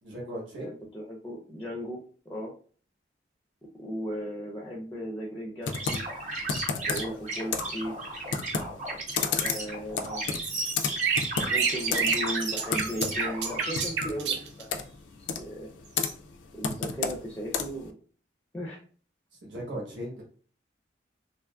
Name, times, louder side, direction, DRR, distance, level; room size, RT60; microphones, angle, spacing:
voice 1, 0.0-0.7 6.9-7.1 19.4-20.2, right 1 dB, 80° right, -3 dB, 1.0 m, -37 dB
voice 2, 0.6-2.5 3.8-6.0 6.8-8.2 9.4-10.4 11.4-14.8 15.2-15.7 16.5-18.0 18.5-18.8, equal, 10° left, -1 dB, 0.4 m, -36 dB
Computer keyboard, 5.6-17.9, left 6 dB, 85° left, 0.3 m, -33 dB
sound 1, 5.7-13.9, right 2 dB, 40° right, 0.7 m, -34 dB
sound 2, 10.1-14.6 16.0-16.1, right 6 dB, 65° right, 0.4 m, -28 dB
2.9 x 2.4 x 2.2 m, 0.42 s
head